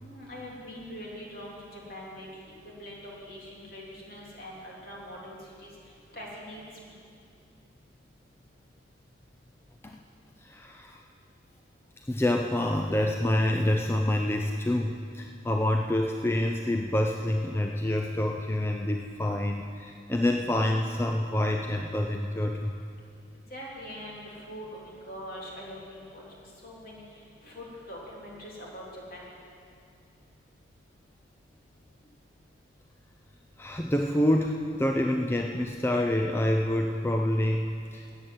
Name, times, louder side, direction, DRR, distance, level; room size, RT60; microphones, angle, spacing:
voice 1, 0.0-2.3 2.8-5.7 6.1-6.6 23.5-24.2 24.5-26.2 26.6-27.0 27.4-29.2, equal, 50° left, -4 dB, 3.3 m, -43 dB
voice 2, 10.4-11.0 12.1-22.7 33.6-38.0, left 1 dB, 15° left, 3 dB, 0.5 m, -27 dB
14.0 x 8.9 x 7.8 m, 2.4 s
head